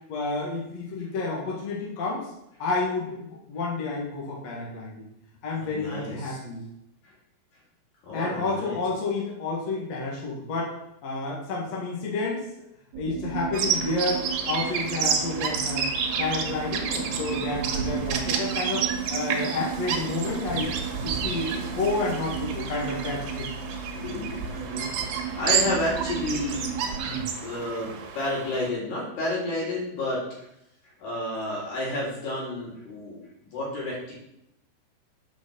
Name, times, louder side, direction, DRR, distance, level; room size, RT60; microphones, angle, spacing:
voice 1, 0.1-2.3 2.6-5.1 5.4-6.6 8.1-10.7 11.0-12.4 13.0-15.9 16.2-20.7 21.0-23.5 27.1-27.2, left 3 dB, 50° left, -3 dB, 2.5 m, -30 dB
voice 2, 5.5-6.4 8.0-8.8 23.9-26.7 27.1-30.3 31.0-33.2 33.5-34.1, left 1 dB, 70° left, -5 dB, 5.8 m, -31 dB
sound 1, 12.9-27.3, right 7 dB, 55° right, 2.7 m, -35 dB
Bird vocalization bird call bird song, 13.5-28.7, right 6 dB, 75° right, 3.3 m, -30 dB
9.3 x 5.2 x 6.9 m, 0.80 s
omnidirectional pair, 4.8 m